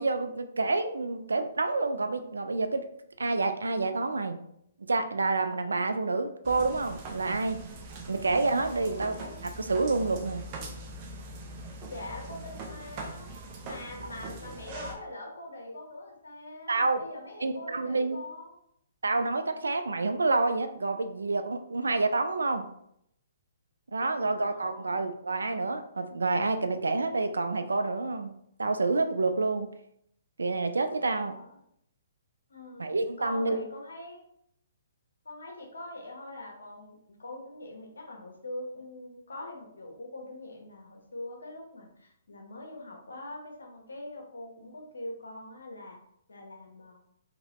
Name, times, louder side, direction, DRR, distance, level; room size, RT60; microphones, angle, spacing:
voice 1, 0.0-2.9 3.2-4.4 4.8-7.6 8.1-9.2 9.6-10.4 14.0-14.1 16.7-17.0 17.4-18.2 19.0-22.7 23.9-28.3 28.6-29.7 30.4-31.3 32.8-33.6, right 3 dB, 85° right, 8 dB, 0.3 m, -28 dB
sound 1, 6.4-14.9, right 2 dB, 35° right, 0.6 m, -42 dB
voice 2, 8.8-9.3 11.9-13.3 13.6-18.5 24.0-25.1 31.0-31.5 32.5-32.8 33.2-34.3 35.2-46.0 46.3-47.0, left 1 dB, 80° left, 1 dB, 1.0 m, -43 dB
3.0 x 2.8 x 2.9 m, 0.73 s
hypercardioid pair, 135°, 0 cm